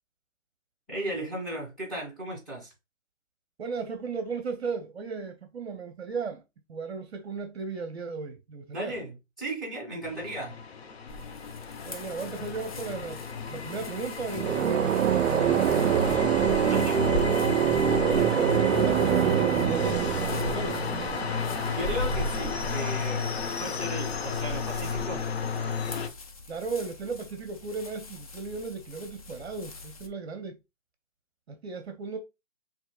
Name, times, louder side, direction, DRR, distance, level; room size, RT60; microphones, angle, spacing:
voice 1, 0.9-2.7 8.7-10.6 16.7-17.0 21.8-25.2, right 1 dB, ahead, 2.1 m, -35 dB
voice 2, 3.6-6.4 6.7-9.0 11.8-13.2 13.5-15.0 15.3-16.5 18.0-20.8 26.5-30.6 31.5-32.2, right 4 dB, 55° right, 0.9 m, -35 dB
sound 1, 10.0-26.1, left 5 dB, 55° left, 0.8 m, -33 dB
sound 2, 11.1-30.1, equal, 30° left, 0.5 m, -40 dB
sound 3, 14.3-22.0, right 9 dB, 75° right, 0.5 m, -25 dB
6.4 x 2.9 x 2.3 m
hypercardioid pair, 150°, 38 cm